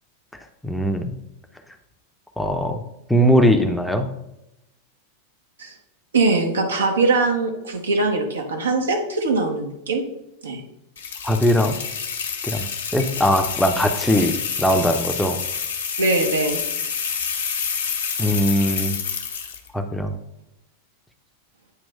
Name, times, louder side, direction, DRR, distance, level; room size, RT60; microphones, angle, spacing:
voice 1, 0.6-1.1 2.4-2.8 3.1-4.1 11.2-11.8 12.4-12.7 12.9-15.4 18.2-19.0 19.7-20.1, equal, ahead, 4 dB, 0.7 m, -20 dB
voice 2, 6.1-10.0 10.4-10.6 16.0-16.6, right 3 dB, 70° right, 3 dB, 1.1 m, -21 dB
sound 1, 11.0-19.7, left 6 dB, 65° left, 0.9 m, -28 dB
8.6 x 3.1 x 5.3 m, 0.89 s
figure-of-eight pair, 90°, 0 cm